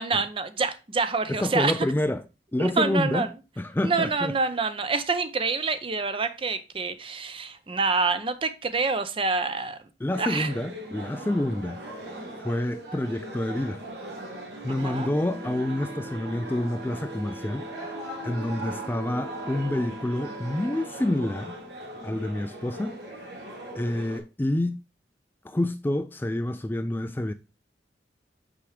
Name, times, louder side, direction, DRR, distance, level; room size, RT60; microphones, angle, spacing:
voice 1, 0.0-1.9 2.6-3.3 3.8-9.8 10.2-10.5 14.7-15.1 18.7-18.9, right 4 dB, 30° right, 0.6 m, -27 dB
voice 2, 1.3-2.2 2.5-3.3 3.6-4.3 10.0-11.8 12.4-13.8 14.6-17.6 18.2-21.5 22.0-23.0 23.7-24.8 25.4-27.3, left 1 dB, 10° left, 0.3 m, -28 dB
sound 1, 10.1-24.2, right 1 dB, 75° right, 2.4 m, -39 dB
Wind instrument woodwind instrument, 14.7-20.9, right 2 dB, 10° right, 1.1 m, -43 dB
6.0 x 6.0 x 3.2 m
head